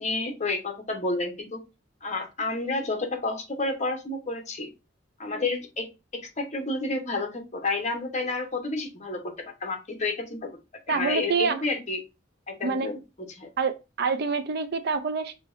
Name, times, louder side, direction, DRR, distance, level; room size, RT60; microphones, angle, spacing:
voice 1, 0.0-1.6 2.0-4.7 5.2-5.9 6.1-10.5 10.9-12.0 12.5-13.5, left 3 dB, 40° left, 1.1 m, -30 dB
voice 2, 10.9-11.5 12.6-12.9 13.6-13.7 14.0-15.3, right 5 dB, 60° right, 0.5 m, -26 dB
6.2 x 2.9 x 2.6 m
head